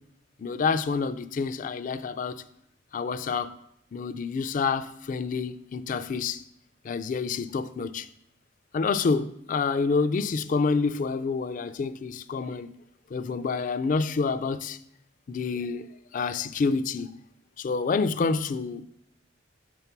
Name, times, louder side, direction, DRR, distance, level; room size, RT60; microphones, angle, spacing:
voice 1, 0.4-2.4 2.9-3.5 3.9-6.4 6.8-8.1 8.7-12.7 13.1-14.8 15.3-15.9 16.1-17.1 17.6-18.8, left 4 dB, 45° left, 0.4 m, -28 dB
6.9 x 3.6 x 5.9 m
head